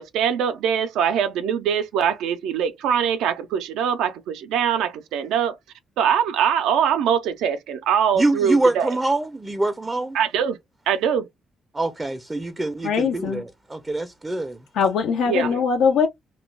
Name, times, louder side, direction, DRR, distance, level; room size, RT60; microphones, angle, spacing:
voice 1, 0.0-5.6 6.0-8.9 10.1-10.6 10.9-11.3 15.3-15.5, right 8 dB, 90° right, 0.3 m, -22 dB
voice 2, 8.2-10.2 11.7-14.6, right 2 dB, 15° right, 0.4 m, -24 dB
voice 3, 12.8-13.4 14.7-16.1, left 6 dB, 80° left, 0.4 m, -21 dB
2.1 x 2.1 x 3.1 m
cardioid pair, 90°, 0 cm